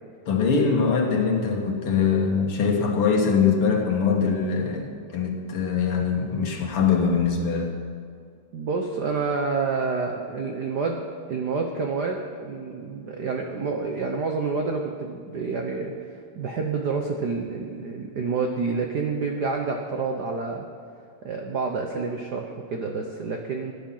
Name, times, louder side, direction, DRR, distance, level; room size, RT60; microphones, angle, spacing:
voice 1, 0.3-7.7, left 5 dB, 55° left, 2 dB, 2.1 m, -23 dB
voice 2, 8.5-20.7 21.2-23.7, right 4 dB, 85° right, 2 dB, 0.9 m, -28 dB
16.0 x 10.0 x 5.7 m, 2.3 s
omnidirectional pair, 3.3 m